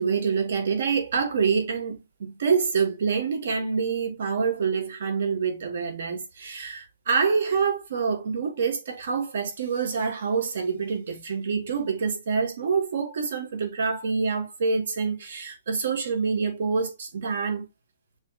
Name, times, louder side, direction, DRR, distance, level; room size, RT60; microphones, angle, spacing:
voice 1, 0.0-17.7, right 5 dB, 60° right, 1.3 m, -26 dB
6.5 x 3.0 x 2.2 m
hypercardioid pair, 170°, 0 cm